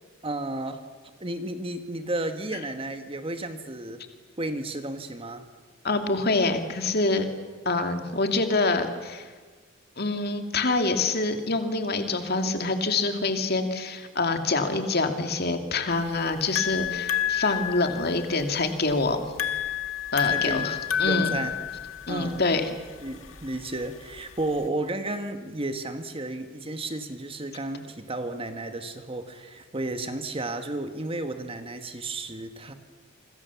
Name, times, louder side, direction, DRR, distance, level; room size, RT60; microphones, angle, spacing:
voice 1, 0.2-0.8 1.2-4.1 4.4-5.5 20.3-20.7 21.0-21.6 22.1-22.5 23.0-32.7, right 2 dB, 25° right, 7 dB, 1.6 m, -33 dB
voice 2, 5.8-7.3 7.7-9.3 10.0-19.2 20.1-21.3 22.1-22.7, left 3 dB, 50° left, 6 dB, 2.5 m, -26 dB
sound 1, 15.9-24.7, left 10 dB, 85° left, 1.8 m, -30 dB
28.0 x 25.5 x 7.2 m, 1.4 s
head